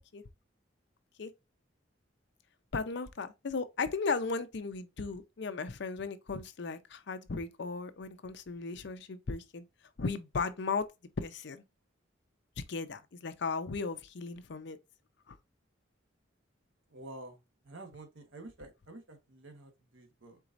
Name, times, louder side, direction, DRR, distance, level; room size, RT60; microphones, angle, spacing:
voice 1, 2.7-9.6 10.0-10.9 11.2-11.6 12.7-14.8 15.3-15.4, left 4 dB, 65° left, 0.6 m, -36 dB
voice 2, 16.9-17.4 17.6-20.4, right 2 dB, 85° right, 1.2 m, -49 dB
4.7 x 3.9 x 2.5 m
head